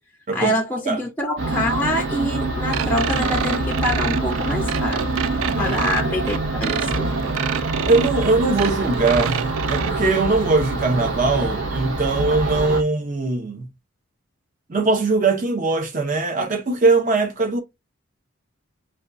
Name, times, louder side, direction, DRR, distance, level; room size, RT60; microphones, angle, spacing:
voice 1, 0.3-5.1 5.6-7.1, left 1 dB, 10° left, 0.4 m, -25 dB
sound 1, 1.4-12.8, right 2 dB, 65° right, 0.8 m, -25 dB
sound 2, 2.7-9.9, right 8 dB, 85° right, 0.3 m, -28 dB
voice 2, 7.9-13.7 14.7-17.6, right 3 dB, 40° right, 0.6 m, -21 dB
5.0 x 2.2 x 2.4 m
head